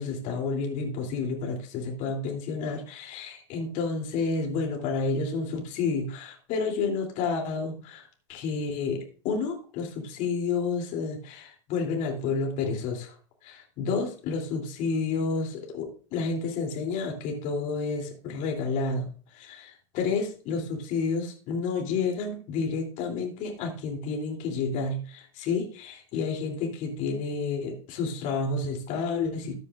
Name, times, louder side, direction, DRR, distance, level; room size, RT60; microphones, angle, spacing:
voice 1, 0.0-13.1 13.4-29.5, left 4 dB, 50° left, 1 dB, 3.1 m, -30 dB
13.5 x 9.5 x 2.5 m, 0.39 s
hypercardioid pair, 95°, 17 cm